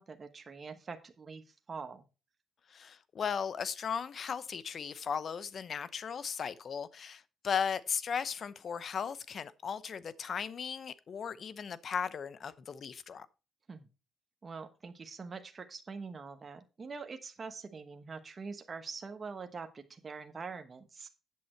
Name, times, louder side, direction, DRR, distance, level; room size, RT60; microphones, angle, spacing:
voice 1, 0.0-2.0 13.7-13.9 14.4-21.1, right 4 dB, 35° right, 1.1 m, -44 dB
voice 2, 2.7-13.3, left 7 dB, 50° left, 0.7 m, -36 dB
8.5 x 7.5 x 4.4 m
cardioid pair, 90°, 0 cm